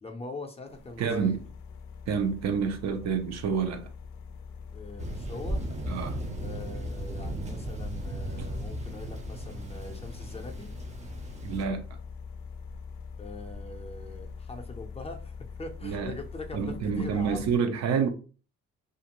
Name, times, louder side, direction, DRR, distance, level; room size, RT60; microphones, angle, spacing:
voice 1, 0.0-1.4 4.7-5.6 6.3-10.7 13.2-17.4, left 2 dB, 20° left, 0.5 m, -42 dB
sound 1, 0.7-17.6, left 5 dB, 80° left, 0.4 m, -43 dB
voice 2, 1.0-1.4 2.1-3.9 5.9-6.2 8.4-8.5 11.4-11.9 15.8-16.1 16.5-18.1, right 6 dB, 60° right, 0.6 m, -28 dB
Thunder, 5.0-11.7, right 1 dB, 25° right, 0.6 m, -36 dB
2.5 x 2.4 x 2.9 m
cardioid pair, 90°, 30 cm